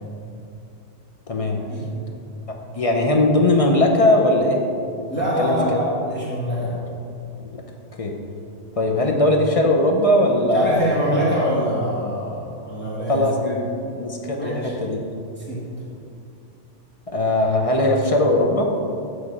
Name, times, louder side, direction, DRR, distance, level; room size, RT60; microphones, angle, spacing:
voice 1, 1.3-1.6 2.7-4.6 5.1-5.8 7.4-7.6 8.0-8.1 8.8-11.0 13.1-13.7 13.9-14.5 14.8-15.0 17.1-18.7, left 1 dB, 45° left, 1 dB, 0.5 m, -19 dB
voice 2, 5.1-6.8 10.5-13.3 14.4-14.7 15.4-15.6, equal, 10° left, -8 dB, 1.7 m, -24 dB
8.1 x 3.2 x 6.0 m, 2.5 s
omnidirectional pair, 1.3 m